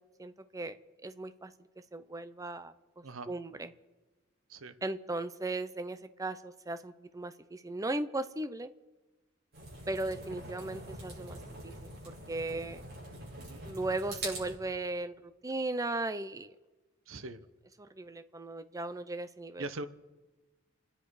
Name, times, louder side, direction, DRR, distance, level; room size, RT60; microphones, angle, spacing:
voice 1, 0.2-0.8 1.0-1.5 1.9-2.7 3.3-3.7 4.8-8.7 9.9-12.8 13.6-16.5 18.0-19.6, right 2 dB, 15° right, 10 dB, 0.6 m, -37 dB
sound 1, 9.5-14.6, right 2 dB, 55° right, 6.9 m, -44 dB
voice 2, 17.1-17.4 19.6-19.9, right 2 dB, 85° right, 11 dB, 1.0 m, -41 dB
29.0 x 10.0 x 4.8 m, 1.2 s
head